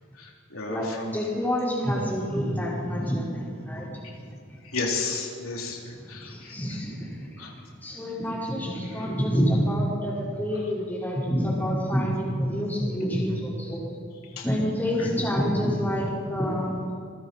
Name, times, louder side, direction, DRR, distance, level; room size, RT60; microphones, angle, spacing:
voice 1, 0.1-1.1 4.6-6.6 7.4-7.5 8.9-9.1 10.5-10.6 14.4-14.5 15.0-15.1, left 3 dB, 90° left, -1 dB, 3.7 m, -33 dB
voice 2, 0.7-4.0 6.2-13.8 14.4-16.9, equal, 10° left, -6 dB, 5.4 m, -27 dB
27.0 x 22.0 x 4.6 m, 2.1 s
head